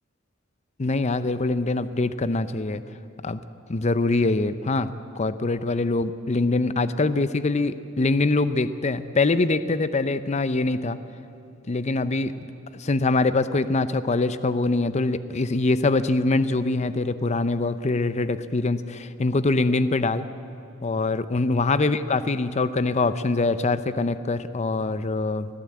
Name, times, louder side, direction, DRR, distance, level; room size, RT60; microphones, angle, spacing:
voice 1, 0.8-2.8 3.2-3.4 3.7-4.9 5.2-11.0 11.7-12.3 12.7-20.3 20.8-25.5, left 3 dB, 35° left, 13 dB, 0.6 m, -24 dB
24.5 x 16.0 x 8.5 m, 2.6 s
head